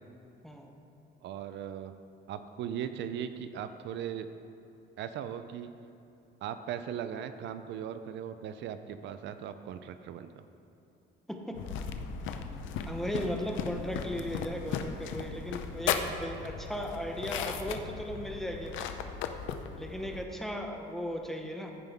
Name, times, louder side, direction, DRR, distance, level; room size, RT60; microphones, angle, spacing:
voice 1, 1.2-1.9 2.3-4.3 5.0-5.7 6.4-10.4, right 9 dB, 70° right, 10 dB, 0.5 m, -38 dB
sound 1, 11.5-20.3, left 7 dB, 80° left, 0.6 m, -36 dB
voice 2, 12.9-18.9 19.8-21.7, equal, ahead, 2 dB, 0.9 m, -37 dB
14.5 x 5.4 x 3.5 m, 2.9 s
cardioid pair, 120°, 19 cm